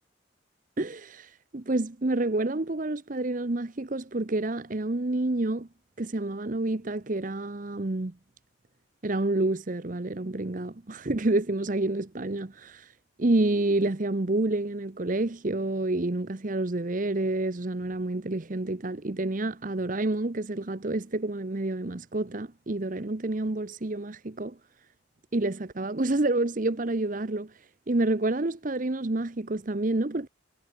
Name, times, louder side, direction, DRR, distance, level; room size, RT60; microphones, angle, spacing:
voice 1, 0.8-5.7 6.0-8.1 9.0-12.9 13.2-24.6 25.3-27.5 27.9-30.3, right 2 dB, 40° right, 0.8 m, -28 dB
head